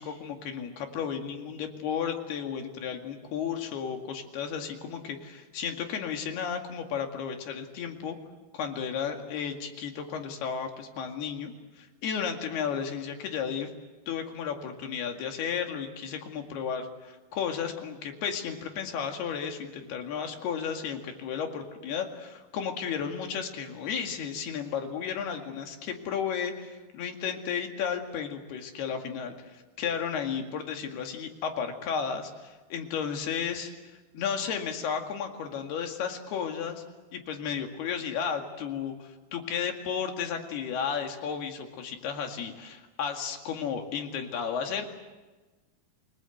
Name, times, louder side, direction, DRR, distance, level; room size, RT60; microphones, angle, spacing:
voice 1, 0.0-8.2 8.5-13.7 14.1-33.7 34.1-36.8 37.1-45.0, left 7 dB, 85° left, 4 dB, 4.2 m, -33 dB
28.5 x 20.5 x 8.0 m, 1.2 s
omnidirectional pair, 4.4 m